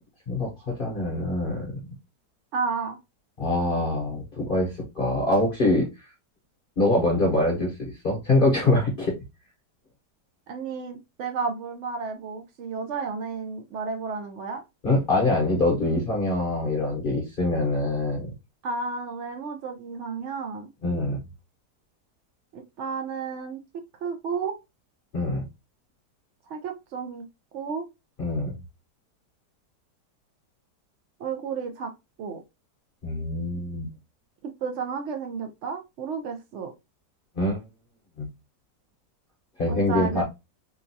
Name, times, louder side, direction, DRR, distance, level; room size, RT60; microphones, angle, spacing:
voice 1, 0.3-1.8 3.4-5.9 6.8-9.2 14.8-18.3 20.8-21.2 25.1-25.4 28.2-28.5 33.0-33.9 37.4-37.6 38.2-38.3 39.6-40.2, left 2 dB, 45° left, 0.8 m, -24 dB
voice 2, 2.5-3.0 10.5-14.6 18.6-20.7 22.5-23.6 24.0-24.6 26.5-27.3 27.5-27.9 31.2-31.9 32.2-32.4 34.4-36.7 39.7-40.2, right 5 dB, 85° right, 0.6 m, -32 dB
3.8 x 2.3 x 2.6 m
omnidirectional pair, 1.8 m